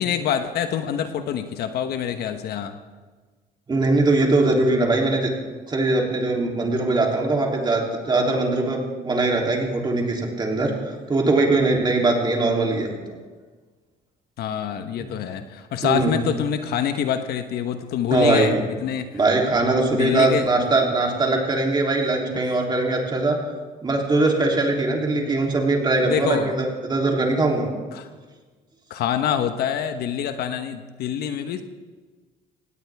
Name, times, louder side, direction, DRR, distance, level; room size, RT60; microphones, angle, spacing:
voice 1, 0.0-2.8 14.4-19.2 19.9-20.5 26.0-26.5 27.9-28.1 28.9-31.6, left 9 dB, 70° left, 8 dB, 1.2 m, -26 dB
voice 2, 3.7-5.3 5.7-13.2 15.0-15.1 15.8-16.2 18.1-18.6 19.1-23.4 23.8-27.7, right 2 dB, 25° right, 0 dB, 3.2 m, -21 dB
18.0 x 18.0 x 3.6 m, 1.4 s
cardioid pair, 110°, 17 cm